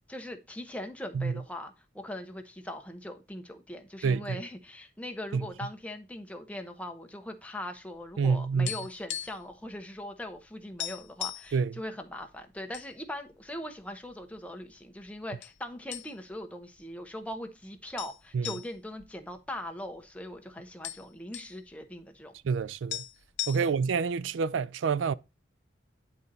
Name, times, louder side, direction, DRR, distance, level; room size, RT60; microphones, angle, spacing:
voice 1, 0.1-22.3 23.6-23.7, left 1 dB, 5° left, 0.9 m, -40 dB
sound 1, 8.1-9.6 9.8-10.0 10.4-10.5 10.8-11.5 12.2-12.9 13.3-13.4 14.1-14.7 15.4-15.6 15.9-16.4 16.8-16.9 18.0-20.0 20.3-20.4 20.6-21.6 22.6-22.7 22.9-24.0, left 12 dB, 80° left, 0.7 m, -38 dB
voice 2, 8.2-8.7 11.5-11.7 18.3-18.5 22.4-23.0 23.5-25.1, right 5 dB, 90° right, 0.4 m, -27 dB
10.0 x 4.0 x 4.0 m
head